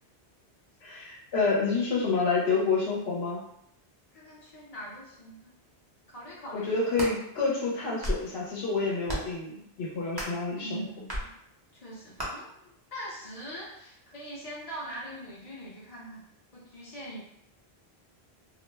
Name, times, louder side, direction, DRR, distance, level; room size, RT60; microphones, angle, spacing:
voice 1, 0.8-3.4 6.5-10.8, left 4 dB, 75° left, -4 dB, 0.9 m, -28 dB
voice 2, 4.1-5.5 6.1-6.8 10.6-11.3 11.7-12.5 12.9-16.2 16.5-17.2, right 1 dB, 45° left, -6 dB, 0.6 m, -42 dB
sound 1, 6.7-7.2 7.8-8.3 9.0-9.4 10.1-10.4 11.1-11.3 12.2-12.3, equal, 25° right, 0.6 m, -33 dB
2.3 x 2.0 x 3.2 m, 0.76 s
omnidirectional pair, 1.1 m